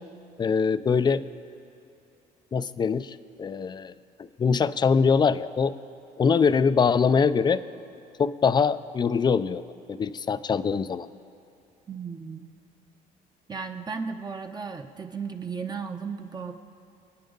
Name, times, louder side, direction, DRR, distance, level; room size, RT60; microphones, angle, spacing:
voice 1, 0.4-1.2 2.5-3.9 4.4-5.7 6.2-7.6 8.2-9.6 9.9-11.1, left 5 dB, 25° left, 14 dB, 0.4 m, -23 dB
voice 2, 11.9-12.5 13.5-16.5, right 5 dB, 25° right, 5 dB, 0.9 m, -35 dB
28.5 x 9.5 x 3.9 m, 2.6 s
cardioid pair, 110°, 17 cm